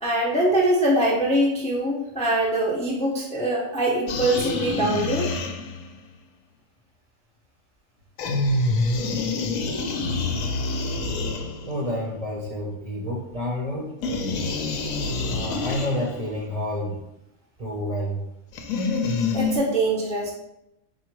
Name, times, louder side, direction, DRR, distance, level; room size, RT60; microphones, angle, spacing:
voice 1, 0.0-5.3 19.3-20.3, right 1 dB, 10° left, -3 dB, 0.4 m, -23 dB
sound 1, 4.1-6.0 8.2-11.9 14.0-16.3 18.5-19.6, left 3 dB, 85° left, 1.0 m, -26 dB
voice 2, 11.6-14.0 15.3-17.0 17.6-18.2, left 1 dB, 35° right, -3 dB, 0.7 m, -29 dB
3.8 x 2.5 x 4.5 m, 0.86 s
omnidirectional pair, 1.4 m